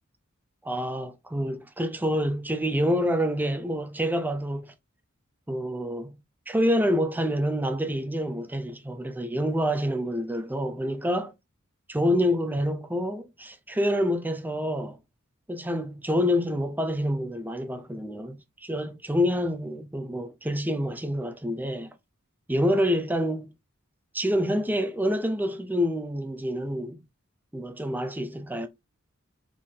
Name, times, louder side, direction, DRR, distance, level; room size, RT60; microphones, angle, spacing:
voice 1, 0.6-4.7 5.5-6.2 6.5-11.3 11.9-15.0 15.5-21.9 22.5-23.5 24.1-27.0 27.5-28.7, equal, 10° right, 0.5 m, -27 dB
4.3 x 3.6 x 3.2 m
head